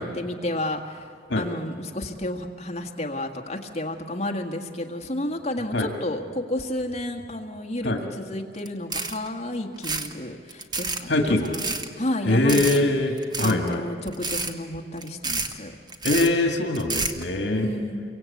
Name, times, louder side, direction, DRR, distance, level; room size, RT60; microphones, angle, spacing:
voice 1, 0.0-12.8 13.4-15.7 17.5-18.0, left 1 dB, 35° left, 3 dB, 1.7 m, -31 dB
sound 1, 8.6-8.7 8.9-9.3 9.8-10.1 10.5-11.0 11.4-11.9 12.5-12.8 13.2-13.7 14.1-14.5 15.0-15.5 15.9-16.3 16.7-17.2, right 3 dB, 25° right, 1.3 m, -29 dB
voice 2, 11.1-11.5 12.3-13.8 16.0-17.7, left 2 dB, 75° left, 3 dB, 2.0 m, -22 dB
28.0 x 23.5 x 8.5 m, 2.3 s
head